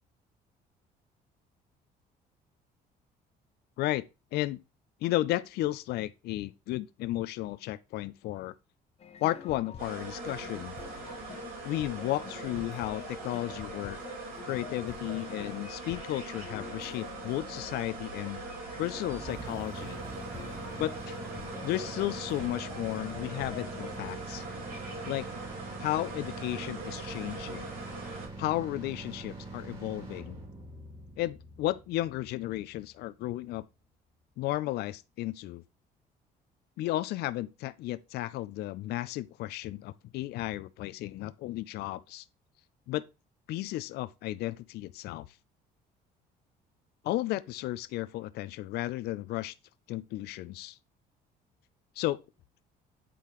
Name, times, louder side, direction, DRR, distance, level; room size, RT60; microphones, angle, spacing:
voice 1, 3.8-4.6 5.0-8.5 9.2-10.8 11.6-14.0 14.4-18.4 18.8-20.0 20.8-21.2 21.6-24.4 25.1-25.3 25.8-27.7 28.4-30.4 31.2-33.6 34.4-35.6 36.8-42.2 42.9-43.0 43.5-45.3 47.0-49.5 49.9-50.8 52.0-52.2, left 16 dB, 75° left, 0.4 m, -34 dB
sound 1, 9.0-24.2, left 7 dB, 40° left, 0.8 m, -48 dB
sound 2, 9.8-28.3, right 3 dB, 60° right, 3.6 m, -41 dB
sound 3, 19.1-33.0, right 2 dB, 40° right, 3.8 m, -44 dB
8.4 x 3.7 x 3.0 m
cardioid pair, 110°, 17 cm